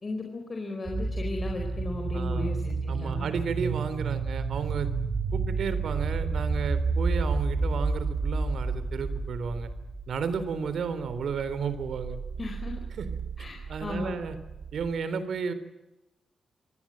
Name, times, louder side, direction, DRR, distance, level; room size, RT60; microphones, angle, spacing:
voice 1, 0.0-3.3 12.4-12.7 13.4-14.1, left 2 dB, 25° left, 1 dB, 4.6 m, -35 dB
sound 1, 0.9-14.9, right 4 dB, 30° right, 4.0 m, -31 dB
voice 2, 2.1-2.5 2.9-4.9 5.3-9.7 10.1-12.2 13.0-13.1 13.7-14.4 14.7-15.5, right 6 dB, 60° right, 12 dB, 3.7 m, -32 dB
27.0 x 19.5 x 9.0 m, 0.95 s
wide cardioid pair, 160°, 0 cm